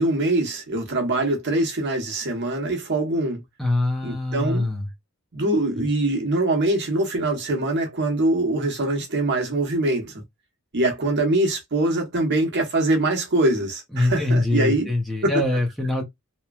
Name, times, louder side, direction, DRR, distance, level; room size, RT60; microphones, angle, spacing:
voice 1, 0.0-3.4 4.0-4.7 5.3-10.2 10.7-14.9 15.2-15.3, right 2 dB, 50° right, 1.0 m, -23 dB
voice 2, 3.6-4.9 13.9-16.0, left 2 dB, ahead, 0.7 m, -23 dB
3.0 x 2.2 x 2.3 m
head